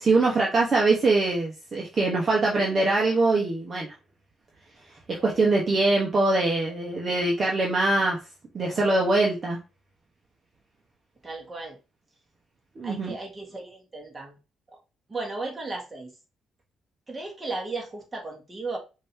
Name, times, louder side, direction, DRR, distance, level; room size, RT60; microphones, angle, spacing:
voice 1, 0.0-3.9 5.1-8.2 8.5-9.6 12.8-13.1, right 2 dB, 40° right, -2 dB, 1.2 m, -23 dB
voice 2, 11.2-11.8 12.8-14.4 15.1-16.1 17.1-18.8, right 3 dB, 25° right, 1 dB, 1.8 m, -35 dB
5.1 x 2.9 x 3.4 m, 0.30 s
cardioid pair, 90°, 0 cm